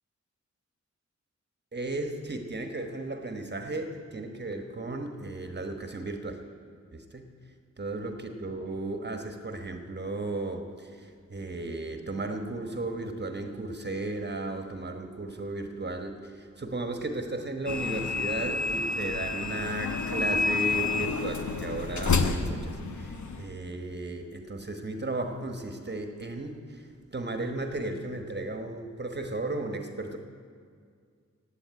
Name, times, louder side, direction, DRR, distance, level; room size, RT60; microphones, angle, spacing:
voice 1, 1.7-6.4 6.9-7.3 7.8-30.2, right 2 dB, 35° right, 4 dB, 1.2 m, -35 dB
sound 1, 17.7-23.5, left 4 dB, 80° left, 1.0 m, -29 dB
16.0 x 8.4 x 9.4 m, 2.1 s
wide cardioid pair, 105°, 29 cm